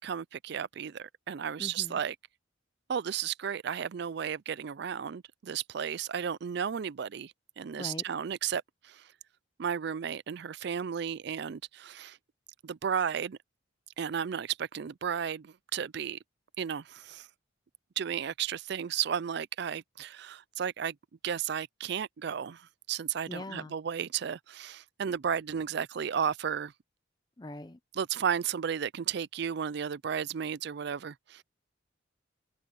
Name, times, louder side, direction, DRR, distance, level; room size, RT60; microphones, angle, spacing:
voice 1, 0.0-2.2 2.9-9.1 9.6-12.2 12.6-13.4 14.0-16.2 16.6-17.3 18.0-21.0 21.2-26.7 27.9-31.4, right 7 dB, 55° right, 0.4 m, -34 dB
voice 2, 1.6-2.0 7.8-8.0 23.3-23.7 27.4-27.8, left 1 dB, 20° left, 0.6 m, -41 dB
head